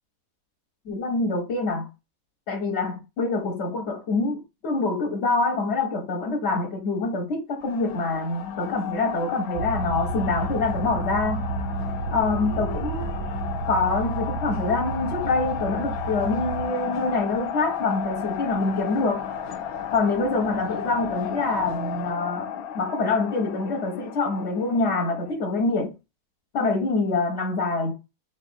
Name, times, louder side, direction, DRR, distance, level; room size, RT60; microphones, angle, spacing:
voice 1, 0.9-1.9 2.5-11.5 12.1-13.2 13.7-19.3 19.9-25.9 26.5-27.9, left 3 dB, 55° left, 1.0 m, -25 dB
sound 1, 7.6-25.3, left 9 dB, 80° left, 1.1 m, -34 dB
sound 2, 9.5-16.7, right 3 dB, 80° right, 1.0 m, -31 dB
3.1 x 2.5 x 4.3 m
omnidirectional pair, 1.6 m